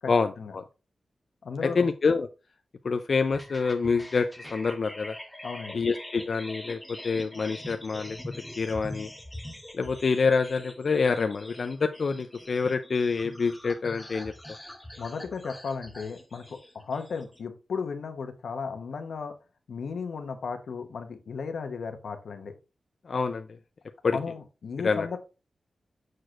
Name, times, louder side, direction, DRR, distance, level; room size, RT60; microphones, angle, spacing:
voice 1, 0.1-0.6 1.6-2.3 2.8-5.1 5.7-8.2 8.6-9.1 9.7-14.3 23.1-23.5 24.0-24.2 24.8-25.1, left 4 dB, 50° left, 7 dB, 0.4 m, -26 dB
voice 2, 1.4-1.9 5.4-5.8 15.0-19.3 19.7-22.6 24.0-25.2, left 5 dB, 85° left, 6 dB, 1.0 m, -35 dB
sound 1, 3.3-17.4, left 1 dB, 5° left, 0.9 m, -43 dB
6.5 x 6.1 x 2.4 m, 0.31 s
wide cardioid pair, 150°, 0 cm